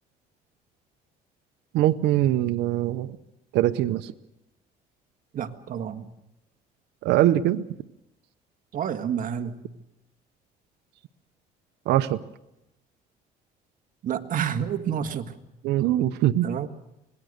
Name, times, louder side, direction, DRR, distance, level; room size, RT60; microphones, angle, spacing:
voice 1, 1.7-3.1 3.5-4.1 7.0-7.6 11.9-12.2 15.6-16.5, right 13 dB, 85° right, 9 dB, 0.9 m, -22 dB
voice 2, 5.3-6.1 8.7-9.6 14.0-15.4 16.4-16.7, right 8 dB, 55° right, 8 dB, 1.8 m, -29 dB
25.5 x 20.0 x 6.6 m, 0.90 s
cardioid pair, 110°, 17 cm